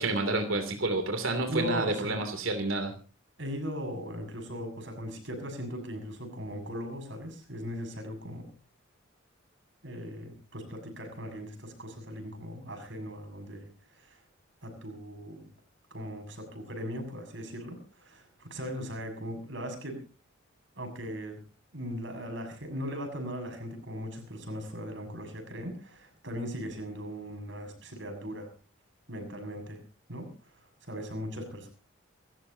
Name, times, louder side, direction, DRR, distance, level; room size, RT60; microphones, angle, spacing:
voice 1, 0.0-2.9, right 2 dB, 80° right, 6 dB, 2.9 m, -29 dB
voice 2, 1.5-2.2 3.4-8.5 9.8-13.7 13.9-14.2 14.6-15.4 15.9-20.0 20.8-21.4 21.7-28.5 29.1-29.8 30.1-31.7, equal, 65° right, 6 dB, 6.9 m, -39 dB
28.5 x 14.0 x 2.8 m, 0.36 s
head